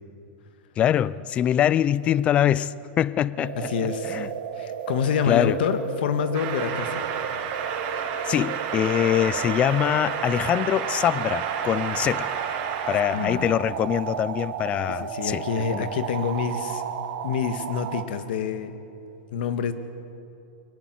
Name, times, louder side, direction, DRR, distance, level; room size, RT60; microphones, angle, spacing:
voice 1, 0.8-4.3 5.3-5.6 8.3-12.3 12.9-15.4 15.7-15.9, left 11 dB, 20° left, 0.4 m, -24 dB
sound 1, 3.4-18.0, right 9 dB, 60° right, 1.6 m, -33 dB
voice 2, 3.5-4.2 4.5-7.1 13.1-13.5 14.9-16.8 17.2-18.8 19.3-19.7, left 7 dB, 65° left, 1.6 m, -27 dB
sound 2, 6.3-13.3, right 7 dB, 40° right, 3.1 m, -31 dB
23.5 x 17.5 x 7.6 m
supercardioid pair, 160°, 6 cm